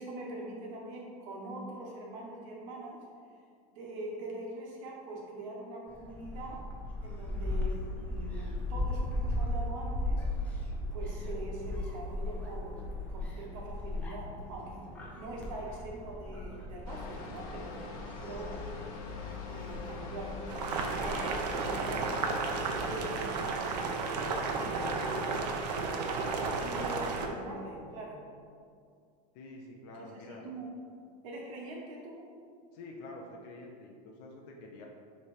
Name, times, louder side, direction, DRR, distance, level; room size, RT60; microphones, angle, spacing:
voice 1, 0.0-3.0 3.7-6.6 7.0-10.6 10.9-14.9 15.2-17.8 18.2-18.6 19.5-20.4 20.8-22.1 22.8-28.3 29.9-30.7 31.2-32.3, right 1 dB, 55° right, -2 dB, 1.4 m, -43 dB
Gull seagull, 5.9-21.3, left 1 dB, 5° left, 0.5 m, -37 dB
sound 1, 16.9-22.9, left 5 dB, 65° left, 1.1 m, -43 dB
voice 2, 18.3-18.6 29.3-30.4 32.7-34.9, left 2 dB, 45° left, -1 dB, 0.8 m, -48 dB
Boiling, 20.5-27.3, right 4 dB, 85° right, 0.8 m, -33 dB
7.1 x 3.5 x 4.9 m, 2.3 s
supercardioid pair, 180°, 20 cm